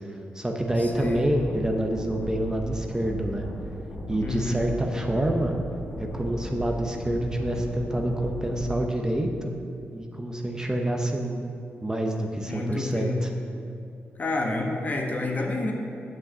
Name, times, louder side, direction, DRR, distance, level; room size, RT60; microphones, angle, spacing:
voice 1, 0.0-3.5 4.1-5.5 6.0-9.5 9.9-11.5 11.8-13.3, right 1 dB, 15° right, 2 dB, 0.9 m, -27 dB
sound 1, 0.7-8.7, equal, 70° left, 2.1 m, -36 dB
voice 2, 0.8-1.2 4.2-4.6 12.5-13.2 14.2-15.7, left 2 dB, 40° left, 1 dB, 1.4 m, -29 dB
8.5 x 5.3 x 7.3 m, 2.5 s
cardioid pair, 75°, 4 cm